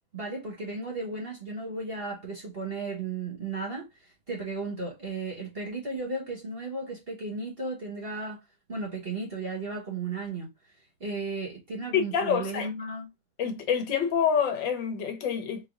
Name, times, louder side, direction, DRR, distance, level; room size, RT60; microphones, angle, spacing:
voice 1, 0.1-3.9 4.3-8.4 8.7-10.5 11.0-13.1, right 3 dB, 35° right, 1.2 m, -34 dB
voice 2, 11.9-12.7 13.4-15.7, left 7 dB, 70° left, 1.5 m, -27 dB
4.2 x 3.1 x 2.4 m
omnidirectional pair, 2.1 m